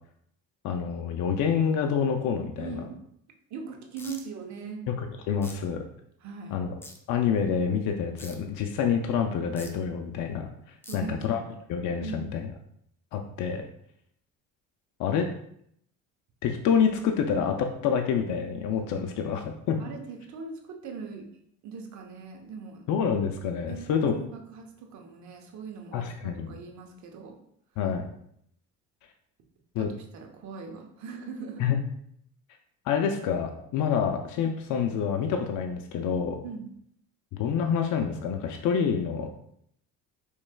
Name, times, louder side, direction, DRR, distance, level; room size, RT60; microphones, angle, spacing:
voice 1, 0.6-2.7 4.9-5.0 5.3-5.8 6.5-6.7 7.1-11.4 11.7-12.5 13.1-13.6 15.0-15.3 16.4-19.8 22.9-24.2 25.9-26.5 27.8-28.1 29.7-29.9 31.6-31.8 32.9-36.4 37.3-39.3, left 7 dB, 65° left, 4 dB, 0.5 m, -27 dB
voice 2, 2.6-3.0 3.5-4.9 6.2-6.6 10.9-11.5 12.0-12.3 19.8-21.3 21.6-22.8 23.7-27.4 29.8-31.6 34.0-34.1 36.4-36.7, right 5 dB, 60° right, 2 dB, 0.8 m, -40 dB
sound 1, 4.0-4.2 5.4-5.5 6.8-7.0 8.2-8.3 9.6-9.7 10.8-11.0, left 2 dB, 5° left, 0.4 m, -43 dB
4.5 x 3.1 x 2.2 m, 0.71 s
cardioid pair, 100°, 32 cm